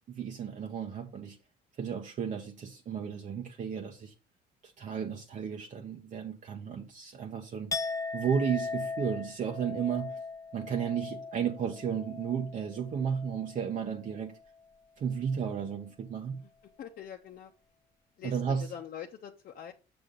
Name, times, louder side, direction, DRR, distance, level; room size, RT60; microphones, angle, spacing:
voice 1, 0.1-1.4 1.8-4.1 4.6-7.7 8.1-10.2 10.5-14.4 15.0-16.4 18.2-18.6, right 7 dB, 45° right, 1.0 m, -33 dB
Chink clink, 7.7-13.6 13.9-14.3, left 4 dB, 20° left, 0.9 m, -39 dB
voice 2, 16.4-17.5 18.2-19.7, left 9 dB, 55° left, 0.8 m, -45 dB
7.0 x 6.2 x 3.8 m
cardioid pair, 110°, 17 cm